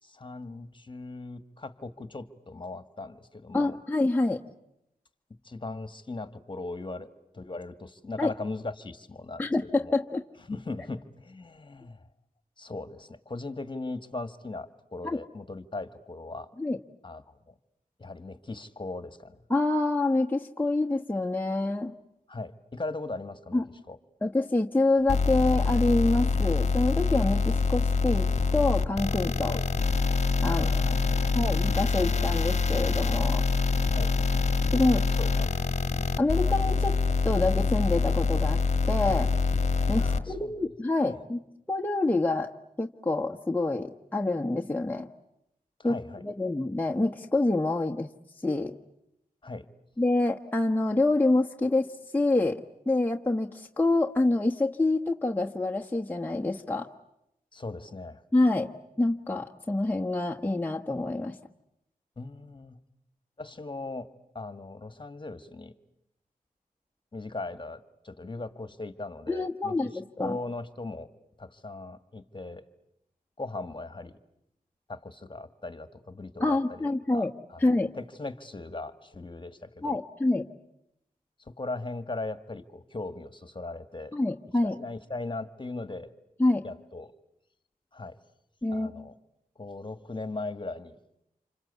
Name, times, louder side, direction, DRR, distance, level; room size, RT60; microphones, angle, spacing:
voice 1, 0.0-3.8 5.4-10.0 10.5-12.0 12.6-16.5 17.0-17.5 18.0-19.4 22.3-23.6 23.9-24.0 29.5-29.7 30.5-31.2 33.9-34.2 35.1-35.5 40.0-40.6 41.0-41.2 45.8-46.2 49.4-49.7 57.5-58.2 62.2-62.8 63.4-65.8 67.1-71.1 71.4-72.6 73.4-74.2 74.9-80.0 81.5-84.1 84.6-86.1 86.6-87.1 87.9-88.2 88.7-89.1 89.6-91.0, left 2 dB, 30° left, 12 dB, 1.8 m, -39 dB
voice 2, 3.5-4.4 8.2-8.3 9.4-10.2 15.0-15.2 16.6-16.8 19.5-21.9 23.5-23.6 24.2-28.3 28.5-29.5 30.4-30.7 31.3-33.4 34.7-35.0 36.2-37.0 37.2-38.6 38.9-39.3 39.9-41.4 41.7-42.5 42.8-45.1 45.8-45.9 46.2-48.1 48.4-48.8 50.0-51.9 52.1-52.6 52.9-56.9 58.3-58.7 59.0-61.3 69.3-70.4 76.4-77.3 77.6-77.9 79.8-80.5 84.1-84.7 86.4-86.6 88.6-89.0, left 2 dB, 10° left, 1 dB, 1.2 m, -26 dB
sound 1, 25.1-40.2, left 4 dB, 50° left, 1.3 m, -25 dB
28.0 x 25.0 x 8.3 m, 0.82 s
cardioid pair, 50°, 15 cm